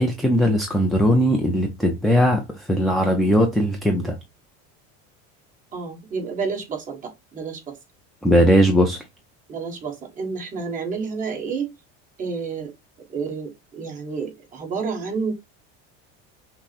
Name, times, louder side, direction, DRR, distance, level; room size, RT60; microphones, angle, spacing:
voice 1, 0.0-4.2 8.2-9.0, equal, ahead, 0.3 m, -19 dB
voice 2, 5.7-7.8 9.5-11.7 12.2-12.7 13.1-15.3, right 5 dB, 25° right, 1.3 m, -30 dB
6.0 x 2.0 x 4.1 m
cardioid pair, 160°, 31 cm